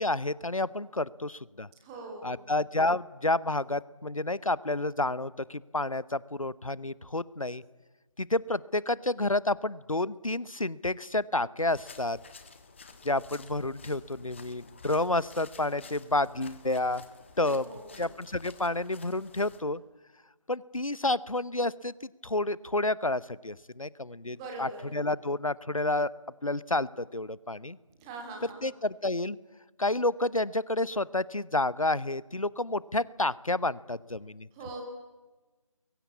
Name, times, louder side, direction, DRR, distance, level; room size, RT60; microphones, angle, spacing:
voice 1, 0.0-1.7 2.2-7.6 8.2-12.2 13.0-17.0 17.4-17.7 18.0-19.8 20.5-21.9 22.2-26.1 26.4-27.8 28.6-29.4 29.8-34.5, left 2 dB, 85° left, 20 dB, 0.9 m, -30 dB
voice 2, 1.8-2.4 17.4-18.0 24.3-24.9 28.0-28.7 34.5-34.8, right 3 dB, 10° right, 2 dB, 2.7 m, -42 dB
sound 1, 11.7-19.6, left 4 dB, 20° left, 1.5 m, -51 dB
28.5 x 22.5 x 8.5 m, 1.2 s
figure-of-eight pair, 160°, 17 cm